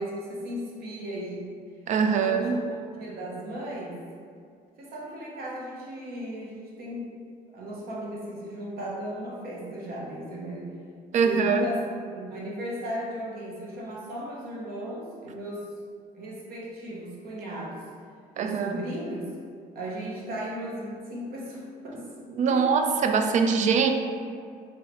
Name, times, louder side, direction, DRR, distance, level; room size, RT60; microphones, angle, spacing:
voice 1, 0.0-1.5 2.0-2.6 3.0-4.0 4.8-7.1 7.5-10.7 11.2-11.8 12.1-15.7 16.1-17.8 18.4-19.2 19.7-22.1 22.5-22.8, right 1 dB, 60° right, -4 dB, 1.0 m, -36 dB
voice 2, 1.9-2.6 11.1-11.6 18.4-18.8 22.4-23.9, right 6 dB, 45° right, 6 dB, 0.4 m, -23 dB
3.7 x 3.1 x 3.0 m, 2.3 s
cardioid pair, 110°, 17 cm